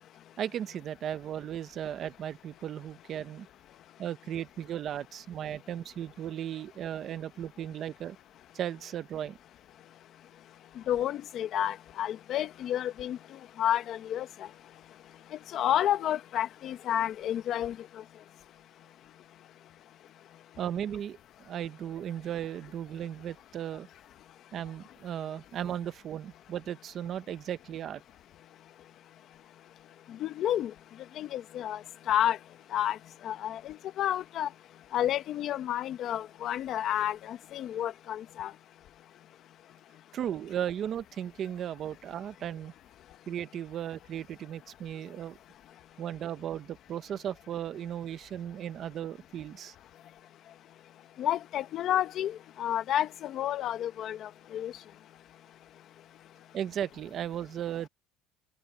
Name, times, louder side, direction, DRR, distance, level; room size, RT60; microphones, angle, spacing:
voice 1, 0.4-3.5 4.0-8.2 8.5-9.4 20.6-21.2 21.4-23.9 24.5-28.0 40.1-42.7 43.3-45.4 46.0-49.7 56.5-57.9, right 10 dB, 35° right, 1.1 m, -36 dB
voice 2, 10.9-13.2 13.6-14.3 15.5-17.8 30.2-30.7 31.2-31.8 32.1-32.4 32.7-33.0 33.2-34.5 34.9-38.5 51.2-54.7, left 11 dB, 40° left, 1.0 m, -30 dB
cardioid pair, 145°, 0 cm